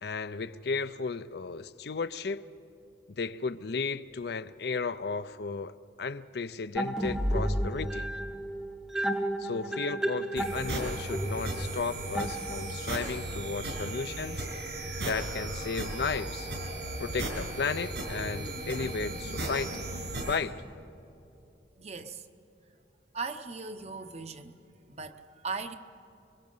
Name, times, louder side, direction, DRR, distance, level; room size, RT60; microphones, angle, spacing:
voice 1, 0.0-2.4 3.2-8.1 9.4-14.5 15.0-16.5 17.0-19.9 20.3-20.6, left 4 dB, 60° left, 13 dB, 0.5 m, -34 dB
sound 1, 6.8-12.9, right 1 dB, 5° right, 0.7 m, -32 dB
sound 2, 10.4-20.4, right 2 dB, 75° right, 5.9 m, -36 dB
voice 2, 21.8-22.2 23.1-24.6 24.9-25.7, right 4 dB, 35° right, 8 dB, 0.9 m, -38 dB
26.5 x 23.0 x 5.5 m, 2.8 s
head